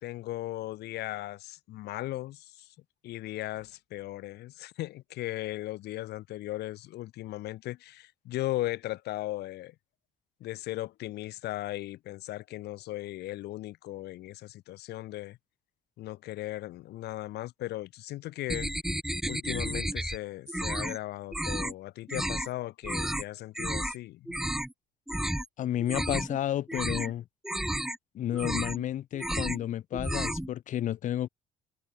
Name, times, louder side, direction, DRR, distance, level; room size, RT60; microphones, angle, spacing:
voice 1, 0.0-2.7 3.0-9.7 10.4-15.4 16.0-18.7 19.3-24.4, left 16 dB, 75° left, 2.2 m, -37 dB
sound 1, 18.5-20.2 20.5-21.0 21.3-21.7 22.1-22.5 22.8-23.2 23.5-24.0 24.3-24.7 25.1-25.5 25.8-26.4 26.7-27.1 27.4-28.0 28.3-28.8 29.1-29.6 29.9-30.5, right 1 dB, 5° right, 0.4 m, -32 dB
voice 2, 25.6-27.2 28.1-31.3, left 11 dB, 50° left, 0.6 m, -31 dB
cardioid pair, 110°, 17 cm